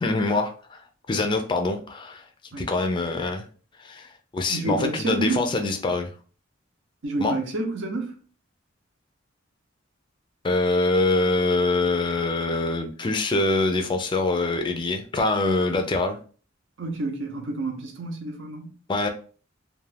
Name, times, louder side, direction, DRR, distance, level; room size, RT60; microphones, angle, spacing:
voice 1, 0.0-2.2 2.6-3.5 3.8-6.1 7.2-7.4 10.4-16.2 18.9-19.1, left 2 dB, 25° left, 0.4 m, -24 dB
voice 2, 4.5-5.5 7.0-8.2 16.8-18.8, right 2 dB, 65° right, 0.7 m, -29 dB
2.4 x 2.3 x 3.2 m
head